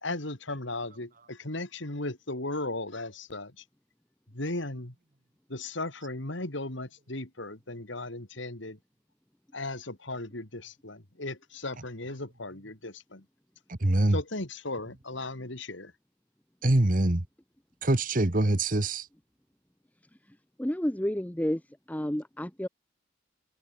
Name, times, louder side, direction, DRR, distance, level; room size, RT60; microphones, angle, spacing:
voice 1, 0.0-3.6 4.3-4.9 5.5-8.8 9.5-13.2 14.1-15.9, left 2 dB, 65° left, 3.1 m, -36 dB
voice 2, 13.7-14.2 16.6-17.2 17.8-19.1, right 1 dB, 40° right, 1.3 m, -24 dB
voice 3, 20.6-21.6 21.9-22.7, equal, 5° left, 0.7 m, -30 dB
head